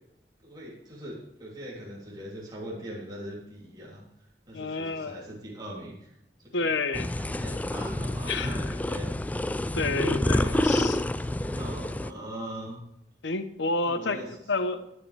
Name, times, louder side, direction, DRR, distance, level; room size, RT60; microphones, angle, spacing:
voice 1, 0.4-4.0 4.5-6.1 6.6-6.7 7.2-9.1 9.8-10.9 11.2-12.8 13.8-14.3, equal, 25° right, -5 dB, 3.0 m, -40 dB
voice 2, 4.5-5.2 6.5-7.1 8.3-8.7 9.7-11.0 13.2-14.2 14.5-14.9, left 3 dB, 85° left, 11 dB, 0.9 m, -29 dB
sound 1, 6.9-12.1, left 1 dB, 10° left, 0.3 m, -28 dB
14.5 x 9.9 x 3.3 m, 0.83 s
head